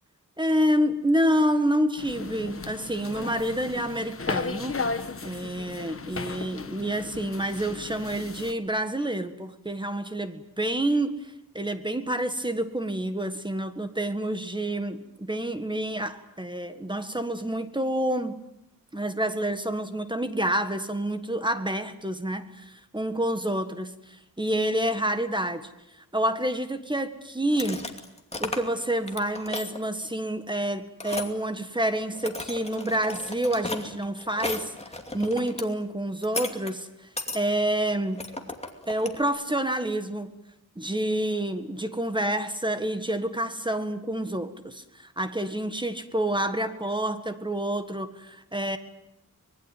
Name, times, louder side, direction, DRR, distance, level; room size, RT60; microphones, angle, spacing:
voice 1, 0.4-18.3 18.9-27.9 28.4-34.7 35.1-37.1 37.3-38.3 38.9-40.3 40.7-48.8, right 1 dB, 15° right, 9 dB, 1.6 m, -28 dB
sound 1, 2.0-8.5, left 4 dB, 40° left, 1.3 m, -35 dB
sound 2, 27.5-28.8 29.0-29.8 31.0-31.3 32.1-35.6 36.2-36.7 37.2-37.4 38.2-39.2, left 2 dB, 20° left, 2.6 m, -35 dB
25.0 x 21.0 x 9.3 m, 0.86 s
wide cardioid pair, 135°, 34 cm